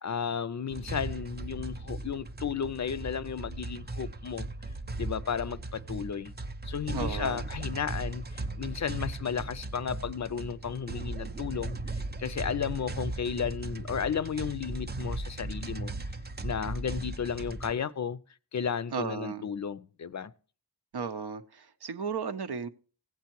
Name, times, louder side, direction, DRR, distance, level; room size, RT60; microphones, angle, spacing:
voice 1, 0.0-4.5 5.0-6.3 6.6-15.9 16.4-18.2 18.5-20.3, left 7 dB, 45° left, 0.4 m, -34 dB
sound 1, 0.7-17.7, right 2 dB, 25° right, 0.5 m, -37 dB
voice 2, 6.9-7.4 18.9-19.5 20.9-22.7, right 6 dB, 75° right, 0.7 m, -35 dB
15.5 x 8.1 x 2.9 m
wide cardioid pair, 75°, 40 cm